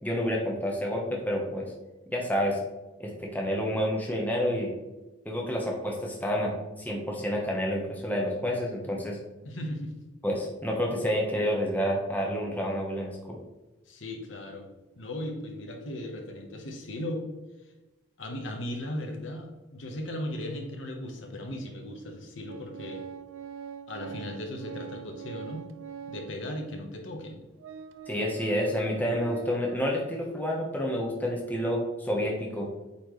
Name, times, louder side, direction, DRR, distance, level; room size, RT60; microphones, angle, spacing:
voice 1, 0.0-1.7 2.1-2.6 3.0-4.7 5.2-9.2 10.2-13.4 28.1-32.7, equal, 10° left, -1 dB, 1.0 m, -29 dB
voice 2, 9.4-9.9 13.9-14.7 15.0-17.2 18.2-23.0 23.9-25.7 26.1-27.4, left 1 dB, 70° left, 2 dB, 1.2 m, -37 dB
Organ, 22.5-26.4 27.1-27.2 27.6-29.8, right 7 dB, 85° right, 0.5 m, -43 dB
8.4 x 4.3 x 3.2 m, 1.1 s
head